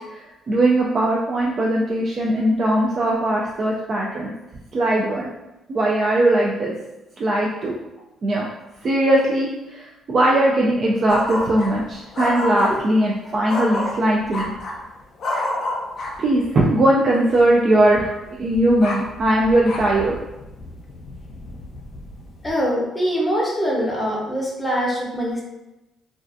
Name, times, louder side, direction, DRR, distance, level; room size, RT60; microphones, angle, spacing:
voice 1, 0.1-4.3 4.7-5.3 5.7-6.7 7.2-7.8 8.2-8.5 8.8-14.5 16.2-20.2, right 1 dB, 50° right, -3 dB, 0.3 m, -19 dB
sound 1, 11.1-11.8 12.1-12.9 13.5-14.8 15.2-16.3 17.3-17.5 17.8-22.5, left 1 dB, 60° left, 0.5 m, -29 dB
voice 2, 22.4-25.4, equal, 15° left, -3 dB, 0.7 m, -23 dB
2.3 x 2.3 x 2.5 m, 0.99 s
cardioid pair, 85°, 0 cm